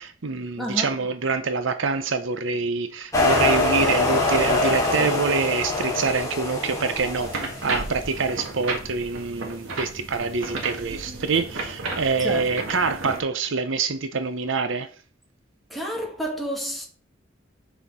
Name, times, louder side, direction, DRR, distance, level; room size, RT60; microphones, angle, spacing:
voice 1, 0.0-14.9, right 4 dB, 70° right, 0.7 m, -26 dB
voice 2, 0.6-1.0 12.2-12.5 15.7-16.9, equal, ahead, 2.3 m, -30 dB
sound 1, 3.1-8.1, left 2 dB, 15° left, 2.3 m, -24 dB
sound 2, 7.0-13.2, right 2 dB, 90° right, 2.1 m, -33 dB
7.3 x 6.1 x 4.2 m
head